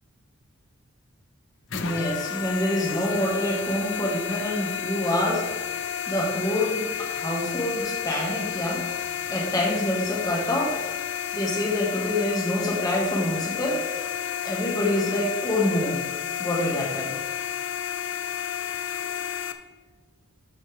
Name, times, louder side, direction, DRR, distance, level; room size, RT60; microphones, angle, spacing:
sound 1, 1.7-19.5, left 8 dB, 60° left, 0.6 m, -31 dB
voice 1, 1.7-5.6 6.1-8.8 9.3-10.8 11.3-13.8 14.4-16.0 16.4-17.1, left 1 dB, 20° left, -3 dB, 2.1 m, -26 dB
13.5 x 6.0 x 3.6 m, 1.3 s
head